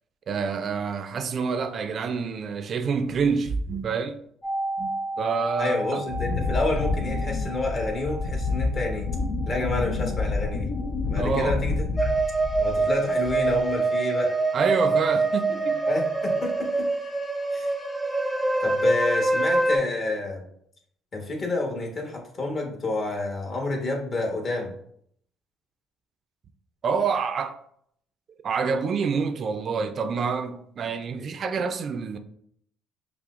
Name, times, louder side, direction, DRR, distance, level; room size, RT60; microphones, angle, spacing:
voice 1, 0.3-4.2 4.8-4.9 5.2-6.0 11.2-11.6 14.5-15.8 26.8-27.6 28.4-32.2, right 5 dB, 50° right, 0.3 m, -27 dB
sound 1, 4.4-14.2 14.4-14.5, right 2 dB, 20° left, 1.0 m, -36 dB
voice 2, 5.6-9.1 9.4-10.7 11.1-12.2 12.6-14.4 15.9-16.9 17.5-17.7 18.6-20.4 21.1-24.7, left 2 dB, 45° left, 1.2 m, -29 dB
Wind, 6.1-12.9 13.2-13.7, left 3 dB, 70° left, 0.4 m, -28 dB
sound 2, 12.0-19.8, right 3 dB, ahead, 0.6 m, -24 dB
5.6 x 2.0 x 2.4 m
cardioid pair, 90°, 0 cm